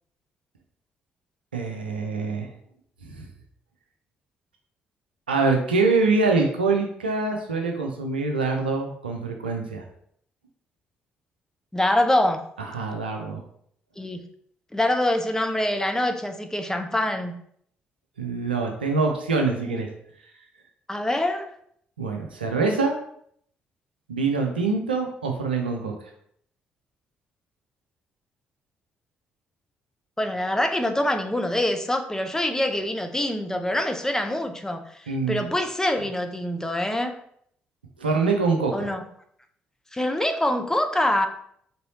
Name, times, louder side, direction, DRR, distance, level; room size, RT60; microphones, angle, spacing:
voice 1, 1.5-2.5 3.0-3.2 5.3-9.8 12.7-13.4 18.2-19.9 22.0-23.0 24.1-25.9 35.1-35.5 38.0-38.9, right 4 dB, 85° right, 2 dB, 0.5 m, -24 dB
voice 2, 11.7-12.4 14.0-14.2 14.7-17.3 19.7-19.8 20.9-21.5 30.2-37.2 38.7-39.0 39.9-41.3, left 1 dB, 10° left, 6 dB, 0.6 m, -25 dB
4.1 x 3.6 x 2.8 m, 0.67 s
figure-of-eight pair, 40°, 5 cm